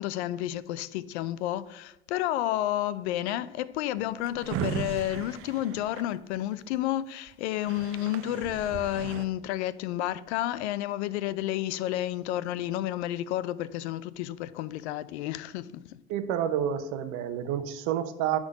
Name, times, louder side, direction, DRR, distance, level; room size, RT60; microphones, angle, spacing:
voice 1, 0.0-16.0, left 13 dB, 75° left, 0.5 m, -31 dB
Drawer open or close, 4.0-6.8 7.3-7.4 7.5-9.3, right 9 dB, 40° right, 0.7 m, -37 dB
voice 2, 16.1-18.4, right 9 dB, 60° right, 0.9 m, -29 dB
9.7 x 3.8 x 5.2 m
hypercardioid pair, 85°, 33 cm